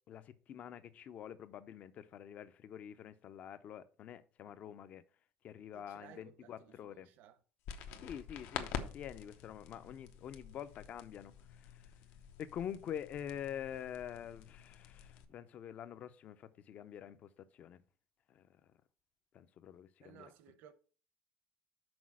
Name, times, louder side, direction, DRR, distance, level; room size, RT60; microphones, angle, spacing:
voice 1, 0.1-5.0 5.4-7.1 8.0-11.9 12.4-17.8 18.3-18.7 19.3-20.3, left 9 dB, 40° left, 0.6 m, -47 dB
voice 2, 5.7-7.4 20.0-20.7, right 9 dB, 65° right, 0.9 m, -58 dB
sound 1, 7.6-15.2, left 8 dB, 70° left, 0.9 m, -47 dB
6.1 x 4.7 x 6.2 m
cardioid pair, 165°, 4 cm